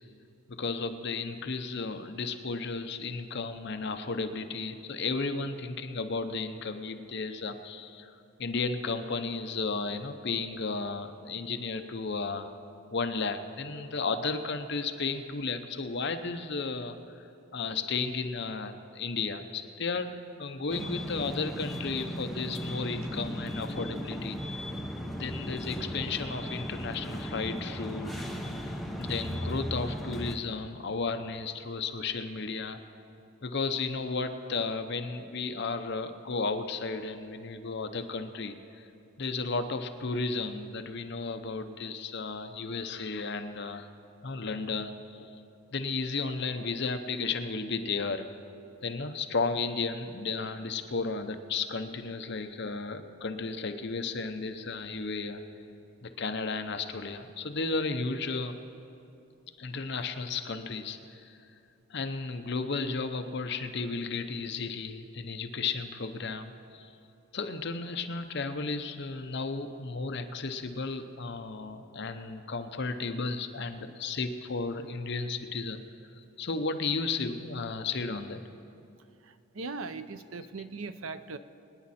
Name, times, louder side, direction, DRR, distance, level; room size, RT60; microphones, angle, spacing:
voice 1, 0.5-8.1 8.4-12.5 12.9-17.2 17.5-24.4 25.2-28.1 29.0-32.8 33.4-38.8 39.2-43.9 44.2-45.4 45.7-48.3 48.8-55.4 56.0-58.6 59.6-61.4 61.9-66.9 67.3-75.8 76.4-78.4, left 4 dB, 55° left, 8 dB, 0.7 m, -34 dB
sound 1, 20.7-30.4, equal, ahead, 0.7 m, -36 dB
voice 2, 79.2-81.4, right 3 dB, 75° right, 11 dB, 0.6 m, -39 dB
24.5 x 9.6 x 4.3 m, 2.6 s
head